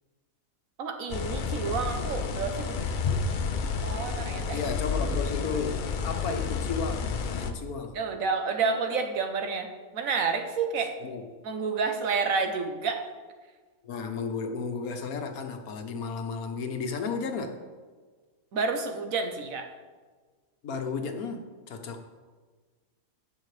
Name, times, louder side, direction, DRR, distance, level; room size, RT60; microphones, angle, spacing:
voice 1, 0.8-2.9 3.8-4.7 7.9-11.0 11.4-13.1 18.5-19.7, right 5 dB, 70° right, 6 dB, 1.3 m, -29 dB
sound 1, 1.1-7.5, left 5 dB, 60° left, 0.5 m, -30 dB
voice 2, 4.5-8.0 11.0-11.4 13.8-17.5 20.6-22.1, left 5 dB, 80° left, 5 dB, 1.4 m, -33 dB
16.0 x 6.2 x 3.3 m, 1.4 s
omnidirectional pair, 1.5 m